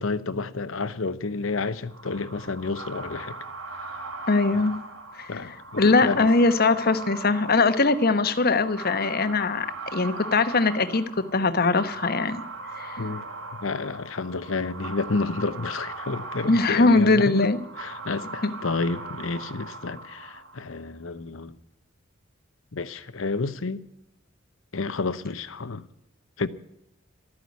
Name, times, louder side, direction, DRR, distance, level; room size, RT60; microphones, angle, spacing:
voice 1, 0.0-3.4 4.5-4.6 5.3-6.3 13.0-13.2 13.6-21.6 22.7-23.8 24.7-25.8 26.4-26.5, left 3 dB, 80° left, 0.9 m, -30 dB
sound 1, 1.9-20.8, right 3 dB, 90° right, 2.0 m, -39 dB
voice 2, 4.3-4.8 5.2-5.3 5.8-9.7 9.9-11.0 11.3-12.4 12.8-13.0 16.5-17.6 18.4-18.5, left 3 dB, 50° left, 1.1 m, -21 dB
13.0 x 9.6 x 9.6 m
head